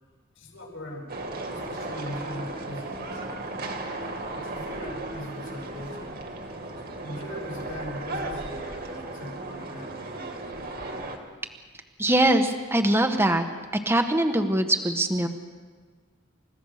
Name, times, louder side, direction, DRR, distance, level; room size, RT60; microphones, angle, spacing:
voice 1, 0.3-1.2 1.5-3.6 4.3-6.2 7.0-10.1, equal, 85° left, -1 dB, 8.0 m, -40 dB
sound 1, 1.1-11.2, right 2 dB, 50° right, 2.6 m, -35 dB
voice 2, 12.0-13.4 13.8-15.3, right 1 dB, 10° right, 6 dB, 1.3 m, -22 dB
29.5 x 16.5 x 6.6 m, 1.5 s
head